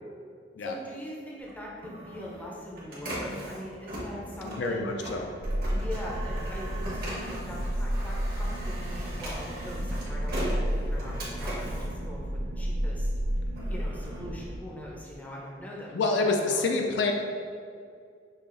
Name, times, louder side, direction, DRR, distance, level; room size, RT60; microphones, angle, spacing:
voice 1, 0.6-4.9 5.7-13.1 13.7-16.7, left 1 dB, 10° left, -4 dB, 0.5 m, -42 dB
Printer, 1.4-12.8 13.3-15.2, right 1 dB, 55° right, 1.0 m, -40 dB
voice 2, 4.4-5.3 15.9-17.1, left 3 dB, 70° left, 3 dB, 0.4 m, -27 dB
sound 1, 5.4-14.6, equal, 75° right, 0.4 m, -31 dB
5.5 x 2.5 x 2.5 m, 2.3 s
head